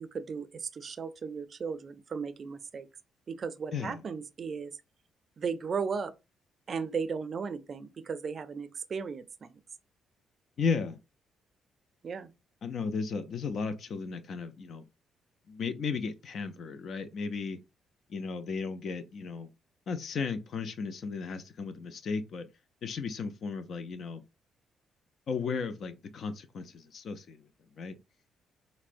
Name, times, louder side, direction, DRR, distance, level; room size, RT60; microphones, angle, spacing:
voice 1, 0.0-2.9 3.3-4.7 5.4-6.1 6.7-9.6 12.0-12.3, right 5 dB, 45° right, 0.4 m, -36 dB
voice 2, 3.7-4.0 10.6-11.0 12.6-14.8 15.5-17.6 18.1-19.5 19.9-22.5 22.8-24.2 25.3-27.4 27.8-28.0, left 5 dB, 60° left, 0.4 m, -35 dB
4.3 x 2.0 x 2.5 m
cardioid pair, 90°, 0 cm